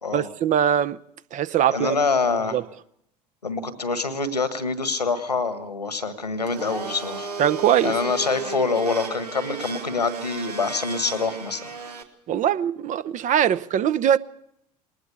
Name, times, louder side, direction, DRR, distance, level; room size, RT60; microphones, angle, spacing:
voice 1, 0.1-1.0 1.3-2.0 2.5-2.6 7.4-7.9 12.3-14.2, right 9 dB, 40° right, 0.8 m, -21 dB
voice 2, 1.7-2.6 3.4-7.3 7.8-11.6, left 4 dB, 90° left, 1.7 m, -25 dB
Domestic sounds home sounds, 6.4-12.0, right 4 dB, 80° right, 2.1 m, -34 dB
20.5 x 19.5 x 7.0 m
figure-of-eight pair, 70°, 20 cm